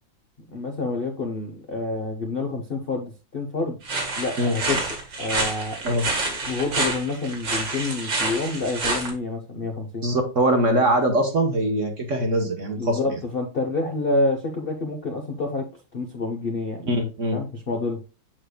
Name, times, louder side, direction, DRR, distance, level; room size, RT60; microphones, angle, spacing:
voice 1, 0.5-3.8 4.2-5.8 6.2-10.1 12.8-16.9 17.3-18.0, left 3 dB, 50° left, 3 dB, 0.7 m, -28 dB
sound 1, 3.8-9.1, right 3 dB, 70° right, 2.6 m, -28 dB
voice 2, 10.0-13.2 16.9-17.4, right 1 dB, 45° right, 4 dB, 1.2 m, -22 dB
7.7 x 6.5 x 2.2 m, 0.32 s
omnidirectional pair, 2.1 m